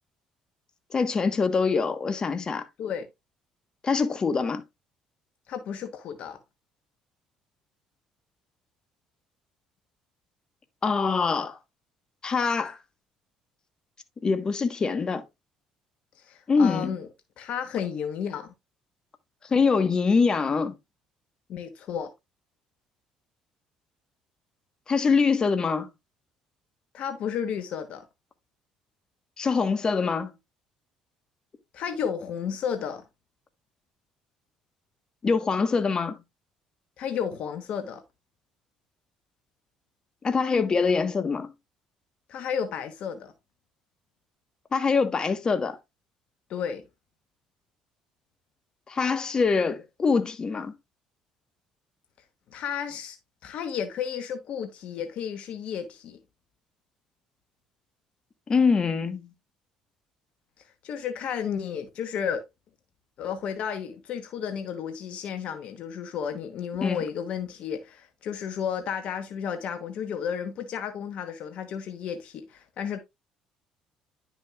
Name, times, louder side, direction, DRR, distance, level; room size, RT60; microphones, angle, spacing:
voice 1, 0.9-2.6 3.8-4.6 10.8-11.6 12.2-12.8 14.2-15.2 16.5-17.0 19.5-20.7 24.9-25.9 29.4-30.3 35.2-36.2 40.2-41.5 44.7-45.8 48.9-50.7 58.5-59.3 66.8-67.0, left 5 dB, 35° left, 1.3 m, -24 dB
voice 2, 5.5-6.4 16.2-17.1 17.4-18.5 21.5-22.1 26.9-28.0 31.7-33.0 37.0-38.0 42.3-43.3 46.5-46.8 52.5-53.2 53.4-56.2 60.8-62.4 63.2-73.0, left 7 dB, 60° left, 1.1 m, -32 dB
10.0 x 6.2 x 2.4 m
supercardioid pair, 70°, 2 cm